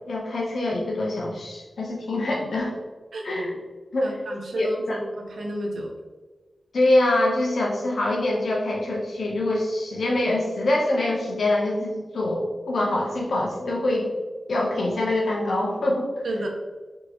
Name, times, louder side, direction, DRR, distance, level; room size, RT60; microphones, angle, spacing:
voice 1, 0.1-2.7 3.2-3.5 3.9-4.1 4.5-5.0 6.7-14.1 14.5-16.1, left 1 dB, 80° left, -2 dB, 0.9 m, -24 dB
voice 2, 4.0-5.9 16.2-16.5, right 1 dB, 80° right, 1 dB, 0.6 m, -31 dB
3.7 x 2.9 x 3.0 m, 1.3 s
cardioid pair, 55°, 0 cm